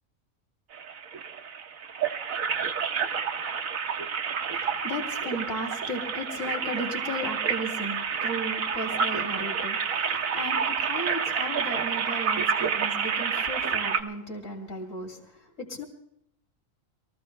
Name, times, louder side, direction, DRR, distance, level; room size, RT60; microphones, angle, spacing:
sound 1, 0.7-14.0, right 6 dB, 75° right, 1.5 m, -29 dB
voice 1, 4.3-15.8, equal, 65° left, 3 dB, 3.3 m, -36 dB
23.5 x 14.5 x 3.3 m, 0.75 s
omnidirectional pair, 1.4 m